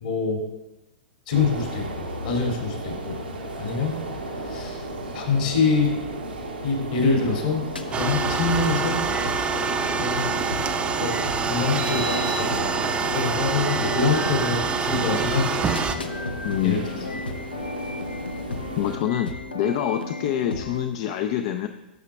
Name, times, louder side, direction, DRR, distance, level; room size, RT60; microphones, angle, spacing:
voice 1, 0.0-0.4 1.3-3.2 3.6-4.0 4.5-4.8 5.1-6.0 6.6-9.0 10.0-10.2 11.0-11.2 11.4-12.7 13.1-16.1 16.6-16.8, left 4 dB, 65° left, -1 dB, 2.4 m, -25 dB
sound 1, 1.3-19.0, right 1 dB, 85° right, 1.1 m, -35 dB
sound 2, 7.6-20.8, left 3 dB, 85° left, 0.7 m, -34 dB
sound 3, 7.9-16.0, right 5 dB, 20° right, 0.5 m, -26 dB
voice 2, 16.4-16.8 18.8-21.7, left 11 dB, 45° left, 8 dB, 0.4 m, -26 dB
11.5 x 6.4 x 2.3 m, 1.0 s
figure-of-eight pair, 105°, 5 cm